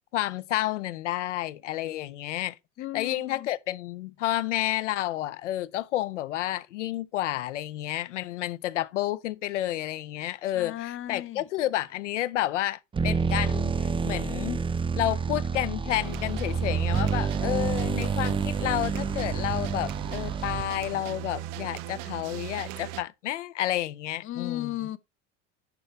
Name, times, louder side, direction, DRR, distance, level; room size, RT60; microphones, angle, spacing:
voice 1, 0.1-2.6 2.9-14.6 14.9-24.8, left 14 dB, 85° left, 0.7 m, -30 dB
voice 2, 2.8-3.5 10.5-11.4 24.2-25.0, left 13 dB, 35° left, 0.7 m, -35 dB
sound 1, 12.9-20.9, right 5 dB, 15° right, 0.5 m, -28 dB
sound 2, 15.9-23.0, right 13 dB, 60° right, 0.7 m, -38 dB
11.0 x 4.3 x 3.3 m
hypercardioid pair, 85°, 35 cm